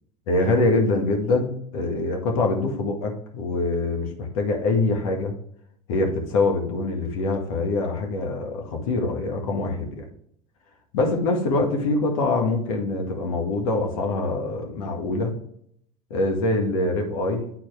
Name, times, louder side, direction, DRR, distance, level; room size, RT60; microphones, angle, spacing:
voice 1, 0.3-5.3 5.9-10.1 10.9-15.4 16.1-17.5, left 2 dB, 70° left, 2 dB, 1.8 m, -24 dB
9.8 x 4.2 x 3.4 m, 0.67 s
hypercardioid pair, 90°, 19 cm